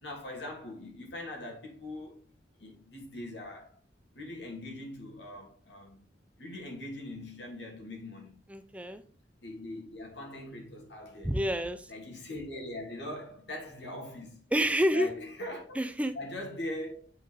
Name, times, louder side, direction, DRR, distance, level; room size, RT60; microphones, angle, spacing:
voice 1, 0.0-2.2 2.6-3.8 4.1-6.1 6.4-8.4 9.4-11.4 11.9-14.4 14.9-15.8 16.1-17.1, left 1 dB, 70° left, 2.8 m, -41 dB
voice 2, 8.5-9.0 11.2-11.9 14.5-15.1 15.8-16.1, equal, 10° right, 0.5 m, -28 dB
8.3 x 5.4 x 3.5 m
head